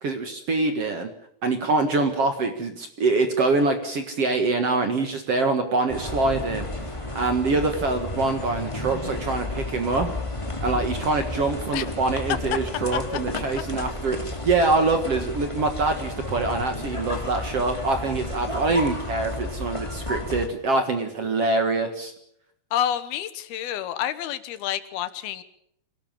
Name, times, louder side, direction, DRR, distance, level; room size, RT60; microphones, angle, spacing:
voice 1, 0.0-1.1 1.4-6.7 7.1-10.1 10.6-22.1, right 3 dB, 50° right, 6 dB, 2.1 m, -24 dB
sound 1, 5.9-20.5, left 1 dB, 10° left, 1.8 m, -32 dB
voice 2, 22.7-25.4, left 10 dB, 75° left, 13 dB, 3.0 m, -28 dB
25.0 x 18.0 x 7.4 m, 0.72 s
omnidirectional pair, 4.6 m